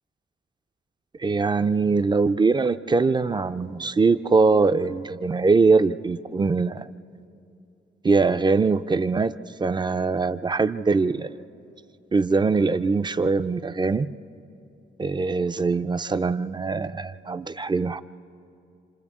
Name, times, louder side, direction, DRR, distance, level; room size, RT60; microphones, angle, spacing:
voice 1, 1.2-6.9 8.0-9.3 9.6-11.3 12.1-14.1 15.0-18.0, right 4 dB, 20° right, 11 dB, 0.4 m, -22 dB
28.5 x 26.5 x 3.6 m, 2.6 s
cardioid pair, 120°, 20 cm